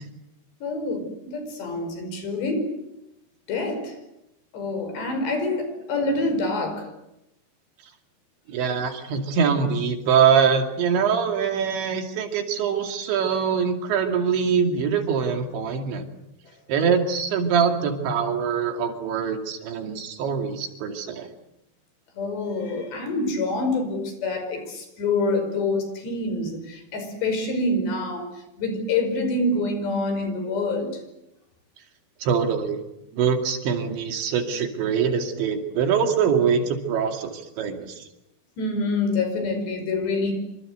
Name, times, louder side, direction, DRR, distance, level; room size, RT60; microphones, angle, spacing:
voice 1, 0.6-2.8 3.5-4.0 4.5-6.9 13.3-13.4 22.2-31.0 38.6-40.3, left 2 dB, 60° left, 7 dB, 7.3 m, -26 dB
voice 2, 8.5-16.0 16.7-21.3 32.2-32.8 33.1-38.0, right 6 dB, 70° right, 5 dB, 4.6 m, -23 dB
27.5 x 26.0 x 8.1 m, 0.86 s
omnidirectional pair, 5.6 m